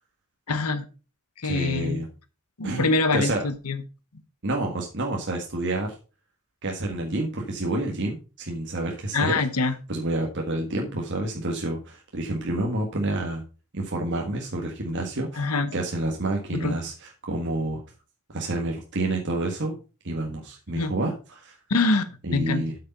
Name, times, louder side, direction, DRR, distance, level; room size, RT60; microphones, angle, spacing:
voice 1, 0.5-0.8 1.4-2.0 2.6-3.8 9.1-9.7 15.4-15.7 16.5-16.8 20.7-20.9 21.7-22.6, left 3 dB, 85° left, 12 dB, 1.1 m, -24 dB
voice 2, 1.4-2.1 2.6-2.9 3.1-3.4 4.4-5.9 6.6-13.4 13.7-17.8 18.3-19.7 20.0-21.6 22.2-22.8, right 2 dB, 55° right, 1 dB, 1.7 m, -29 dB
8.4 x 6.7 x 5.3 m, 0.33 s
head